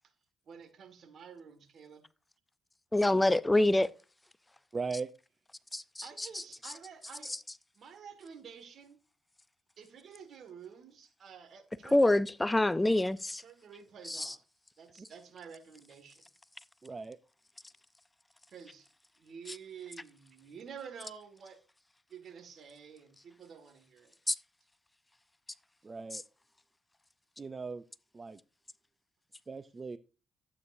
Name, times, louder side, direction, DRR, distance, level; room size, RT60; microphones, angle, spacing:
voice 1, 0.5-2.0 6.0-7.4 7.8-9.0 9.8-12.2 13.4-14.4 14.8-16.2 18.5-18.9 19.2-21.6 22.1-24.1, right 7 dB, 60° right, 1.9 m, -50 dB
voice 2, 2.9-3.9 5.7-6.4 11.9-13.4 14.0-14.3 24.3-24.4, left 1 dB, 15° left, 0.5 m, -26 dB
voice 3, 4.7-5.1 15.0-15.1 16.8-17.2 25.8-26.2 27.4-27.8 28.1-28.4 29.5-30.0, right 4 dB, 35° right, 0.5 m, -38 dB
12.5 x 8.5 x 2.7 m
supercardioid pair, 65°, 0 cm